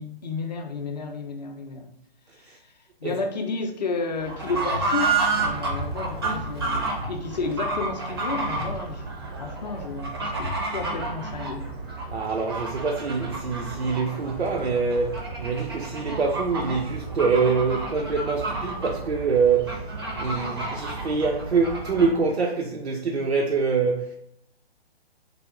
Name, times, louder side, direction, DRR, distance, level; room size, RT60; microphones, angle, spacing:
voice 1, 0.0-1.9 2.6-2.7 3.0-9.0 9.4-11.7, left 4 dB, 45° left, 0.5 m, -32 dB
Fowl / Bird, 4.2-22.2, right 3 dB, 25° right, 0.4 m, -30 dB
voice 2, 12.1-19.8 20.2-24.2, right 4 dB, 85° right, 0.5 m, -25 dB
3.4 x 2.2 x 3.6 m
figure-of-eight pair, 130°, 31 cm